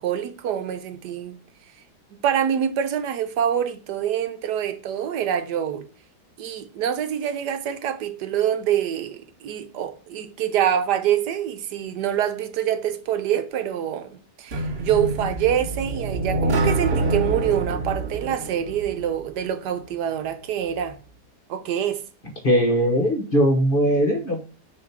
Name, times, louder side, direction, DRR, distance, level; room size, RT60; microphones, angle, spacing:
voice 1, 0.0-1.4 2.2-5.9 6.4-21.0 21.5-22.1, right 9 dB, 75° right, 1.3 m, -25 dB
sound 1, 14.5-19.4, right 2 dB, 45° right, 1.0 m, -26 dB
voice 2, 22.4-24.4, equal, 35° left, 1.1 m, -20 dB
6.7 x 3.2 x 5.9 m
omnidirectional pair, 1.8 m